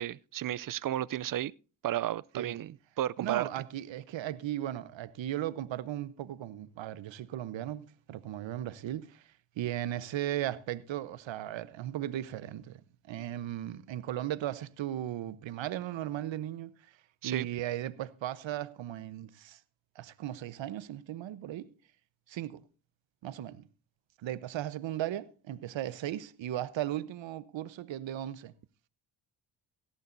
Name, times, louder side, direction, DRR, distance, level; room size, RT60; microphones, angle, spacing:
voice 1, 0.0-1.5 1.8-3.5 17.2-17.5, right 12 dB, 45° right, 0.5 m, -33 dB
voice 2, 3.2-9.2 9.6-12.8 13.1-16.7 17.2-19.6 20.0-21.7 22.3-22.6 23.2-23.6 24.2-28.5, right 12 dB, 70° right, 1.0 m, -36 dB
17.0 x 11.5 x 2.7 m
supercardioid pair, 50°, 48 cm